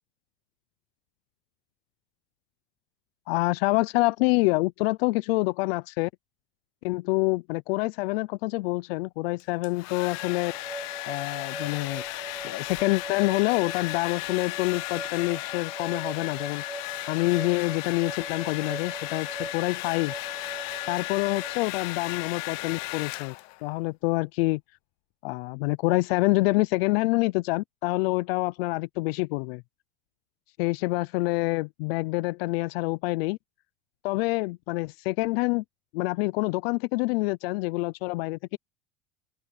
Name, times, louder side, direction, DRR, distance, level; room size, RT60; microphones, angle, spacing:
voice 1, 3.3-6.1 6.8-10.5 11.1-12.0 12.4-20.1 20.9-23.3 23.6-24.6 25.2-29.6 30.6-33.4 34.0-35.6 35.9-38.6, left 23 dB, 80° left, 0.6 m, -27 dB
Domestic sounds home sounds, 9.4-23.7, left 22 dB, 60° left, 1.1 m, -36 dB
sound 1, 10.0-21.6, right 3 dB, 10° right, 1.1 m, -42 dB
open air
supercardioid pair, 130°, 29 cm